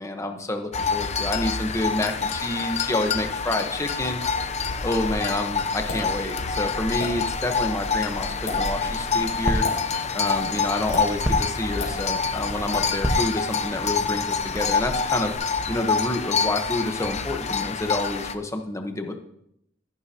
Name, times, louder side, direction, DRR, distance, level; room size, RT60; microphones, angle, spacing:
voice 1, 0.0-4.2 4.8-9.6 10.1-15.3 15.7-19.1, left 1 dB, 15° left, 5 dB, 1.1 m, -28 dB
sound 1, 0.7-18.3, left 5 dB, 35° left, 0.6 m, -27 dB
Crackle, 4.5-15.3, equal, 10° right, 1.2 m, -34 dB
sound 2, 5.9-6.1 7.0-7.1 8.3-8.6 9.6-9.8 10.9-11.1 11.8-12.0, left 3 dB, 75° left, 3.5 m, -31 dB
13.5 x 11.0 x 2.9 m, 0.74 s
head